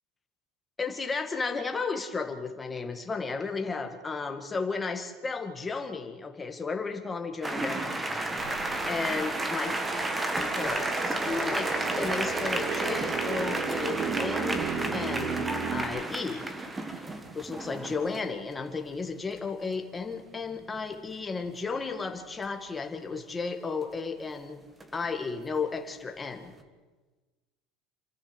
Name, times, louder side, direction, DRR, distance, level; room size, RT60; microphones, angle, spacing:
voice 1, 0.8-8.0 8.9-9.8 10.2-11.7 12.0-16.5 17.3-24.6 24.9-26.5, left 4 dB, 10° left, 5 dB, 1.9 m, -34 dB
sound 1, 7.4-18.2 20.1-20.2 20.5-20.8 24.8-25.1, right 2 dB, 10° right, 1.5 m, -32 dB
sound 2, 8.4-15.8, right 6 dB, 45° right, 3.4 m, -35 dB
28.0 x 14.0 x 8.1 m, 1.3 s
cardioid pair, 170°, 0 cm